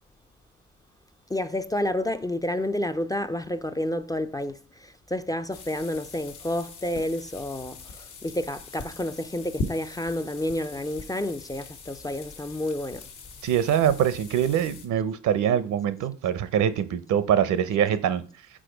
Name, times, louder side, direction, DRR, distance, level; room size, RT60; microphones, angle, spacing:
voice 1, 1.3-13.1, left 1 dB, 15° left, 0.3 m, -30 dB
sound 1, 5.5-14.9, left 3 dB, 85° left, 1.5 m, -41 dB
voice 2, 13.4-18.2, right 9 dB, 75° right, 0.8 m, -24 dB
5.0 x 4.3 x 5.0 m
cardioid pair, 90°, 30 cm